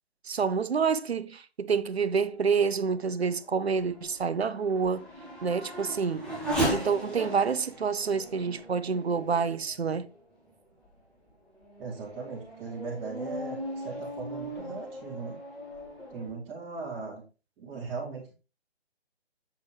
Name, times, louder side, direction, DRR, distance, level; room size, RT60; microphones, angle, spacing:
voice 1, 0.2-5.1 5.4-6.3 6.7-10.1, right 5 dB, 75° right, 0.8 m, -28 dB
Race car auto racing / Accelerating revving vroom, 2.3-10.2 10.8-10.9 11.5-16.3, right 1 dB, ahead, 1.3 m, -37 dB
voice 2, 11.8-15.3 16.1-17.2 17.6-18.3, right 4 dB, 20° right, 2.7 m, -38 dB
7.3 x 6.0 x 3.4 m
figure-of-eight pair, 145°, 31 cm